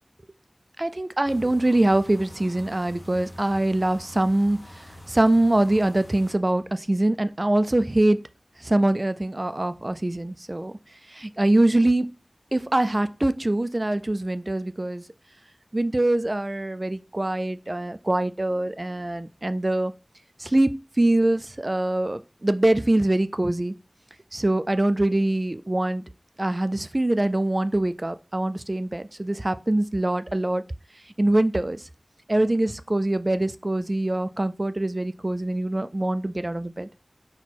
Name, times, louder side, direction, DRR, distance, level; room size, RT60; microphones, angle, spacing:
voice 1, 0.8-4.6 5.1-8.2 8.6-10.7 11.1-12.1 12.5-15.0 15.7-19.9 20.4-23.7 24.3-26.0 26.4-30.6 31.2-31.8 32.3-36.9, right 1 dB, 45° right, 0.3 m, -23 dB
sound 1, 1.2-6.3, equal, 45° left, 1.0 m, -45 dB
4.4 x 2.2 x 4.1 m
wide cardioid pair, 45°, 0 cm